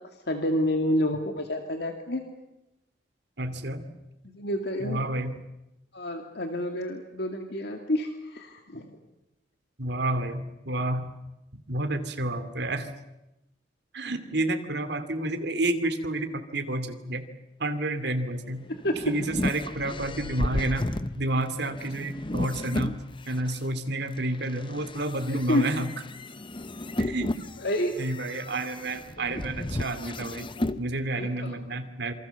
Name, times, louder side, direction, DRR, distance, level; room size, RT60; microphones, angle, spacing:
voice 1, 0.3-2.2 4.2-5.0 5.9-8.9 18.8-19.0 25.3-25.8 27.6-27.9 31.2-31.5, left 1 dB, 65° left, 4 dB, 2.3 m, -29 dB
voice 2, 3.4-3.8 4.8-5.4 9.8-11.1 11.5-12.9 13.9-17.3 17.6-18.7 19.0-20.9 21.2-23.0 23.3-25.9 27.0-27.3 28.0-30.5 30.8-32.1, right 1 dB, 65° right, 7 dB, 2.6 m, -30 dB
sound 1, 18.5-23.6 24.2-30.8, left 1 dB, 30° left, 0.9 m, -34 dB
27.5 x 25.0 x 7.1 m, 0.92 s
head